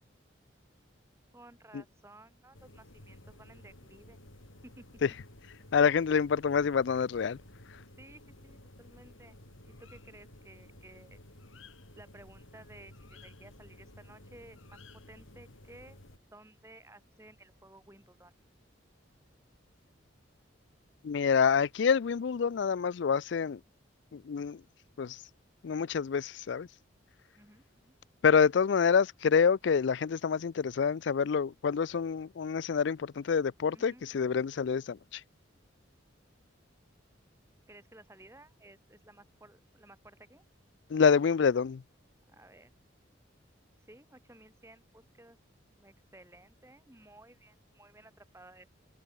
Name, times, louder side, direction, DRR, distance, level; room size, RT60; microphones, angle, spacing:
voice 1, 1.3-4.2 4.6-4.8 8.0-9.4 9.6-11.2 11.9-14.8 15.1-16.0 16.3-18.3 27.3-27.9 33.7-34.3 37.7-40.4 42.3-42.7 43.9-45.4 45.7-48.7, right 1 dB, 15° right, 2.5 m, -56 dB
sound 1, 2.5-16.2, left 1 dB, 85° left, 4.7 m, -54 dB
voice 2, 5.7-7.4 21.0-23.6 24.1-24.6 25.0-25.2 25.6-26.7 28.2-35.2 40.9-41.8, left 6 dB, 65° left, 0.4 m, -27 dB
open air
head